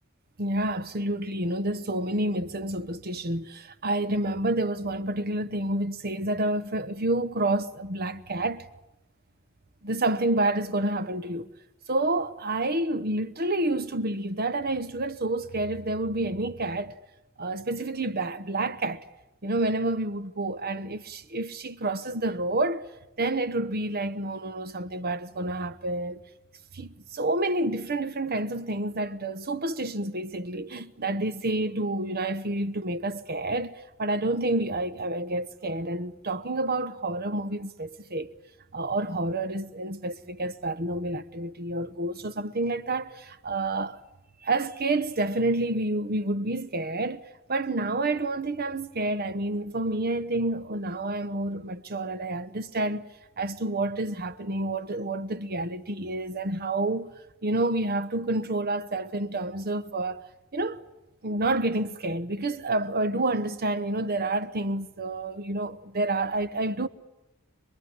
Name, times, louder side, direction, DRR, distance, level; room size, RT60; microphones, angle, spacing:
voice 1, 0.4-8.7 9.8-11.5 11.9-17.0 17.4-19.0 19.4-22.9 23.2-26.2 26.7-38.3 38.7-44.0 44.4-47.2 47.5-53.1 53.4-57.1 57.4-60.2 60.5-60.8 61.2-66.9, right 2 dB, 45° right, 1.1 m, -29 dB
26.5 x 21.0 x 9.6 m
head